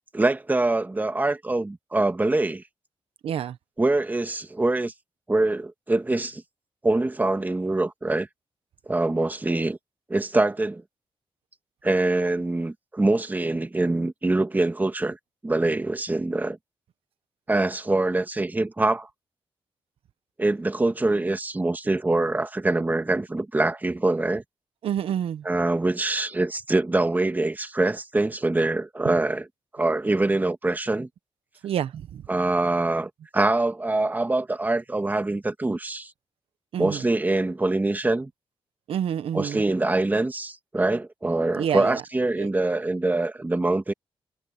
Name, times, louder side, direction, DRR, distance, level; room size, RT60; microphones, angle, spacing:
voice 1, 0.1-2.6 3.8-4.9 5.3-6.4 6.8-8.3 8.9-9.8 10.1-10.8 11.8-15.2 15.4-16.6 17.5-19.1 20.4-24.4 25.4-29.5 29.7-31.1 32.3-36.1 36.8-38.3 39.3-43.9, right 2 dB, 20° right, 1.9 m, -24 dB
voice 2, 3.2-3.6 24.8-25.4 31.6-32.2 36.7-37.0 38.9-39.6 41.6-42.0 42.4-42.5, right 9 dB, 85° right, 1.1 m, -28 dB
cardioid pair, 95°, 9 cm